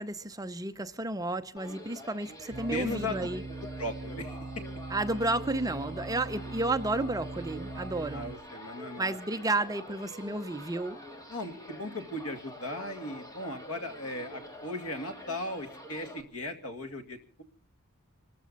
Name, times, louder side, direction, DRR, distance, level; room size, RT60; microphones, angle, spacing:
voice 1, 0.0-3.4 4.9-8.2 9.0-11.0, right 2 dB, 15° right, 0.7 m, -32 dB
sound 1, 1.6-16.2, left 1 dB, 15° left, 2.2 m, -47 dB
sound 2, 2.5-8.3, right 3 dB, 40° right, 4.2 m, -41 dB
voice 2, 2.7-4.5 8.1-9.2 11.3-17.4, left 1 dB, 70° left, 2.2 m, -37 dB
25.0 x 14.0 x 4.1 m
head